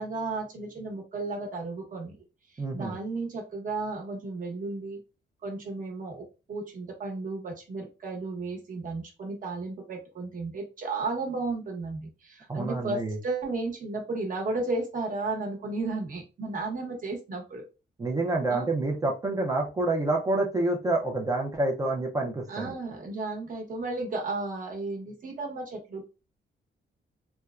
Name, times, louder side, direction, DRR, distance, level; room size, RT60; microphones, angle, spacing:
voice 1, 0.0-2.2 2.7-5.0 5.4-17.6 18.5-18.7 22.5-26.1, right 3 dB, 40° right, 1 dB, 1.0 m, -34 dB
voice 2, 2.6-3.0 12.5-13.2 18.0-22.8, right 2 dB, 15° right, 0 dB, 0.5 m, -28 dB
4.2 x 2.1 x 2.4 m, 0.30 s
wide cardioid pair, 175°, 20 cm